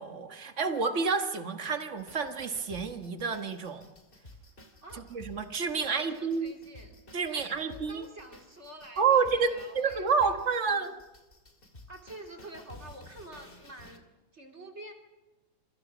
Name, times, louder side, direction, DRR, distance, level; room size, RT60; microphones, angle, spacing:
voice 1, 0.0-3.9 5.1-6.5 7.1-8.0 9.0-11.0, right 5 dB, 55° right, 7 dB, 0.8 m, -29 dB
sound 1, 2.0-14.0, left 1 dB, 20° left, 2.3 m, -52 dB
voice 2, 5.8-7.0 7.3-10.4 10.6-10.9 11.9-14.0 14.3-14.9, right 1 dB, 20° right, 3 dB, 3.0 m, -48 dB
28.0 x 24.5 x 6.1 m, 1.1 s
omnidirectional pair, 3.4 m